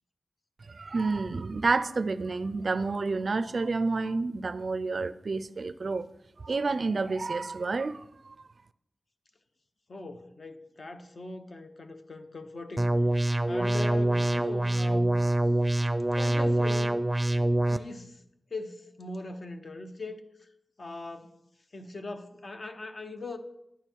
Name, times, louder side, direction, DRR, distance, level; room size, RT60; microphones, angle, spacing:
voice 1, 0.7-6.1 6.4-8.3, right 3 dB, 60° right, 14 dB, 0.4 m, -29 dB
voice 2, 9.9-12.9 13.5-15.2 16.1-17.0 17.7-18.2 18.5-20.5 20.8-21.4 21.7-23.4, left 2 dB, 55° left, 6 dB, 1.0 m, -40 dB
sound 1, 12.8-17.8, right 1 dB, 15° right, 0.5 m, -25 dB
10.5 x 8.8 x 4.6 m, 0.82 s
wide cardioid pair, 100°, 0 cm